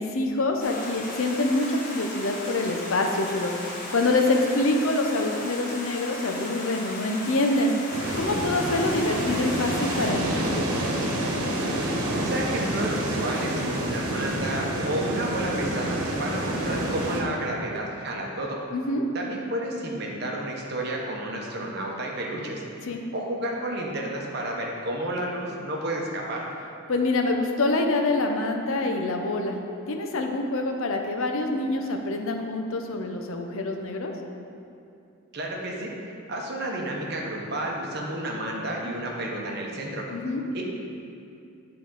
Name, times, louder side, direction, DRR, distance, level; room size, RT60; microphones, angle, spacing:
voice 1, 0.0-7.7 8.2-10.9 18.7-19.1 22.8-23.0 26.9-29.6 29.9-34.1 40.1-40.4, left 2 dB, 70° left, 3 dB, 0.6 m, -26 dB
Stream, 0.6-10.1, left 1 dB, 40° left, 0.9 m, -37 dB
sound 1, 7.9-17.2, right 1 dB, 90° right, 1.1 m, -28 dB
voice 2, 12.1-18.6 19.1-22.6 23.1-26.4 35.3-35.9 36.3-40.0 40.5-40.6, right 1 dB, 45° right, -1 dB, 0.9 m, -31 dB
9.3 x 3.8 x 3.8 m, 2.6 s
head